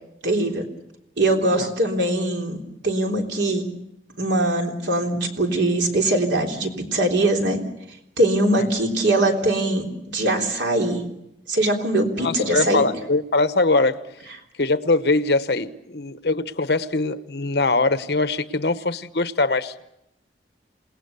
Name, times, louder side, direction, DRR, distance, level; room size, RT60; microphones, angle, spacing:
voice 1, 0.2-0.6 1.2-2.6 2.8-3.7 4.2-7.6 8.2-11.0 11.5-12.8, right 1 dB, 85° right, 2 dB, 3.6 m, -22 dB
voice 2, 12.2-14.0 14.6-19.7, left 3 dB, 65° left, 12 dB, 1.1 m, -22 dB
28.0 x 19.5 x 6.9 m, 0.81 s
head